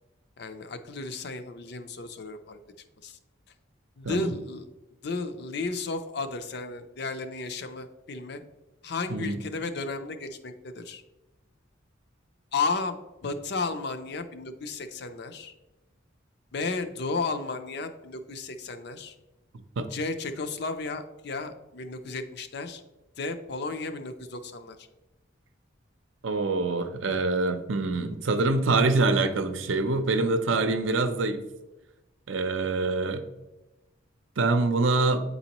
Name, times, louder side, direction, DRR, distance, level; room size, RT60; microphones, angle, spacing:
voice 1, 0.4-2.6 3.0-3.2 4.0-4.7 5.0-8.4 8.8-11.0 12.5-15.5 16.5-19.1 19.9-22.8 23.2-24.9, left 3 dB, 55° left, 8 dB, 0.5 m, -33 dB
voice 2, 9.1-9.4 19.8-19.9 26.2-31.4 32.3-33.2 34.4-35.2, right 3 dB, 75° right, 9 dB, 0.6 m, -25 dB
8.9 x 4.1 x 2.9 m, 1.1 s
head